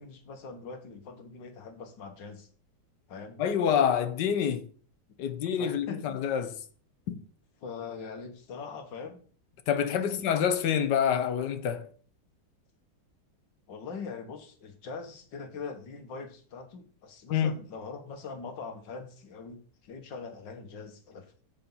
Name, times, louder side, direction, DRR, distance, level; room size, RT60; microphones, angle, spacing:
voice 1, 0.0-2.5 3.1-3.4 5.6-6.0 7.6-9.2 10.0-10.3 13.7-21.3, left 5 dB, 90° left, 2.1 m, -42 dB
voice 2, 3.4-4.6 5.2-6.6 7.1-7.2 9.7-11.9 17.3-17.5, left 8 dB, 75° left, 1.5 m, -27 dB
8.0 x 5.8 x 5.4 m
omnidirectional pair, 1.9 m